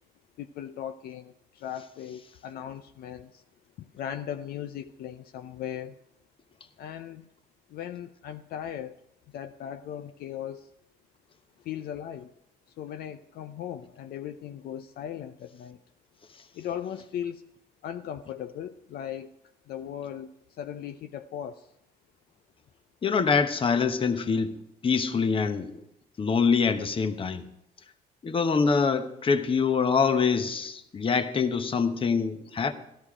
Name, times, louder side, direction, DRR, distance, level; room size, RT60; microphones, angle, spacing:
voice 1, 0.4-3.4 3.8-6.0 6.8-7.3 7.7-9.0 9.3-10.7 11.6-12.3 12.8-15.8 16.5-17.4 17.8-19.3 19.7-21.7, left 10 dB, 65° left, 0.6 m, -38 dB
voice 2, 23.0-24.6 24.8-25.8 26.2-27.4 28.2-32.7, left 5 dB, 30° left, 1.1 m, -25 dB
13.5 x 12.5 x 4.9 m
cardioid pair, 110°, 17 cm